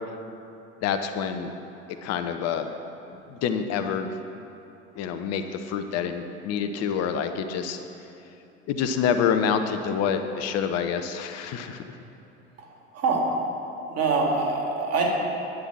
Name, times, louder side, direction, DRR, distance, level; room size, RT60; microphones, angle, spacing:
voice 1, 0.8-1.5 2.0-2.7 3.3-4.1 5.0-7.8 8.7-11.8, left 7 dB, 45° left, 8 dB, 0.9 m, -27 dB
voice 2, 13.9-15.1, right 4 dB, 45° right, -1 dB, 2.5 m, -24 dB
10.5 x 9.9 x 6.1 m, 2.8 s
figure-of-eight pair, 65°, 34 cm